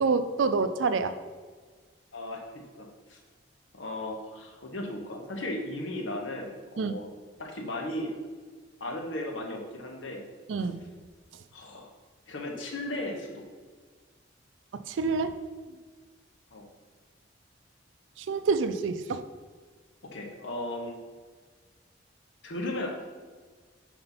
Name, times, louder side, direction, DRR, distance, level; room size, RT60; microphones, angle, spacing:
voice 1, 0.0-1.1 6.8-7.0 10.5-10.8 14.9-15.3 18.2-19.2, right 4 dB, 80° right, 11 dB, 0.4 m, -27 dB
voice 2, 2.1-3.2 3.7-7.1 7.4-8.1 8.8-10.3 10.6-10.7 11.5-11.9 12.3-13.4 16.5-16.7 20.0-21.0 22.4-22.9, left 1 dB, 80° left, 1 dB, 1.0 m, -36 dB
5.6 x 4.4 x 4.1 m, 1.5 s
head